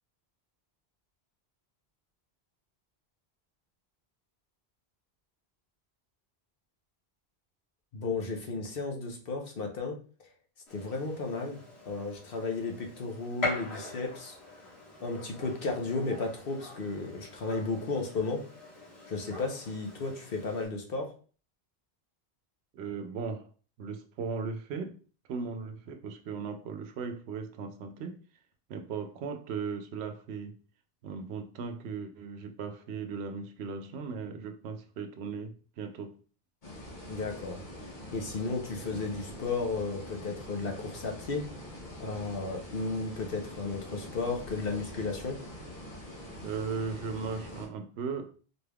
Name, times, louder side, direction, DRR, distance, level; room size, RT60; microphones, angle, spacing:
voice 1, 7.9-10.0 10.7-11.6 11.8-14.3 15.0-18.4 19.1-21.1 37.1-37.6 38.1-41.4 42.0-45.4, left 3 dB, 65° left, 1.0 m, -34 dB
Gunshot gunfire, 10.7-20.7, left 2 dB, 85° left, 1.7 m, -42 dB
voice 2, 22.7-23.5 23.8-25.0 25.3-28.2 28.7-30.6 31.0-36.2 46.4-48.3, right 5 dB, 90° right, 0.8 m, -37 dB
sound 1, 36.6-47.7, left 1 dB, 50° left, 1.2 m, -44 dB
4.3 x 3.3 x 2.3 m
omnidirectional pair, 1.0 m